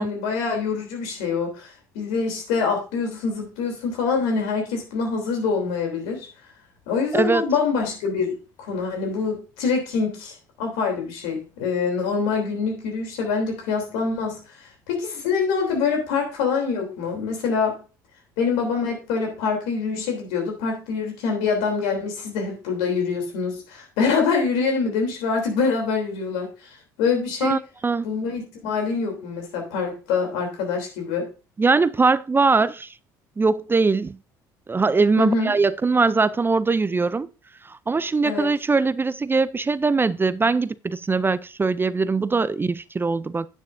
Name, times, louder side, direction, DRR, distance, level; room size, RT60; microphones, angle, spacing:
voice 1, 0.0-6.3 6.9-17.8 18.4-26.7 27.0-27.6 28.0-31.3 35.2-35.5 38.2-38.5, left 5 dB, 75° left, 3.2 m, -25 dB
voice 2, 7.1-7.4 27.4-28.0 31.6-32.9 33.4-34.2 34.7-37.3 37.9-43.5, right 4 dB, 20° right, 0.4 m, -21 dB
9.7 x 9.2 x 2.6 m
hypercardioid pair, 65°, 10 cm